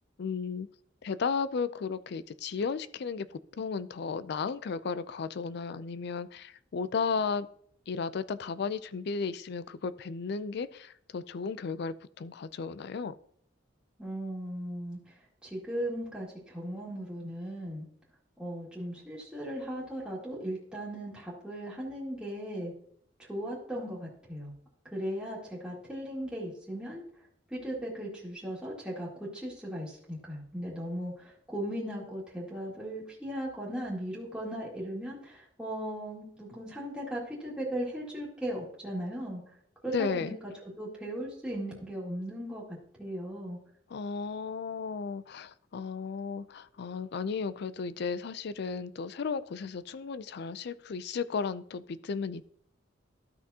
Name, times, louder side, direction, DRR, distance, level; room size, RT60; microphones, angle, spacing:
voice 1, 0.2-0.7 1.0-7.5 7.9-13.1 39.9-40.4 43.9-52.5, left 5 dB, 60° left, 15 dB, 0.4 m, -34 dB
voice 2, 14.0-17.9 18.4-22.7 23.2-24.5 24.8-27.0 27.5-39.4 39.8-43.6, equal, 5° right, -7 dB, 2.1 m, -37 dB
13.0 x 6.0 x 2.8 m, 0.64 s
head